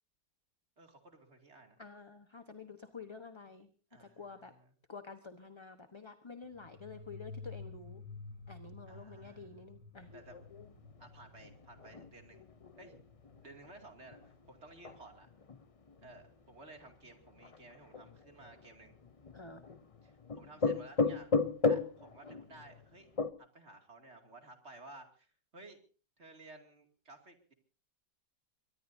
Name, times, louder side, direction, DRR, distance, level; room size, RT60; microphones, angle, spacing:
voice 1, 0.8-1.8 3.9-4.7 8.9-9.6 10.1-10.4 11.0-12.4 12.8-12.9 13.4-15.3 16.0-18.9 20.0-21.3 21.6-23.1 23.4-25.8 26.2-27.5, right 2 dB, 40° right, 4 dB, 2.8 m, -55 dB
voice 2, 1.8-3.7 4.0-4.5 4.9-8.0 8.5-10.1 19.3-19.6, left 4 dB, 20° left, 8 dB, 0.9 m, -49 dB
sound 1, 6.5-14.9, left 3 dB, 80° left, 1.9 m, -52 dB
sound 2, 9.9-23.3, left 4 dB, 50° left, 0.4 m, -37 dB
23.5 x 21.0 x 2.7 m, 0.37 s
omnidirectional pair, 1.9 m